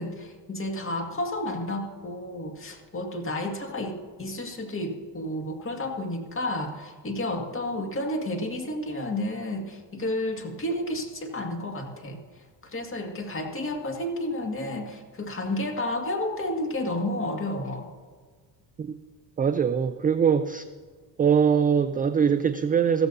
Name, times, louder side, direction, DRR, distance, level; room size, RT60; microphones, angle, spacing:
voice 1, 0.0-12.2 12.6-17.9, left 1 dB, 25° left, 3 dB, 2.0 m, -31 dB
voice 2, 19.4-20.6 21.2-23.1, right 7 dB, 20° right, 10 dB, 0.3 m, -22 dB
15.0 x 14.0 x 2.7 m, 1.6 s
supercardioid pair, 95°, 48 cm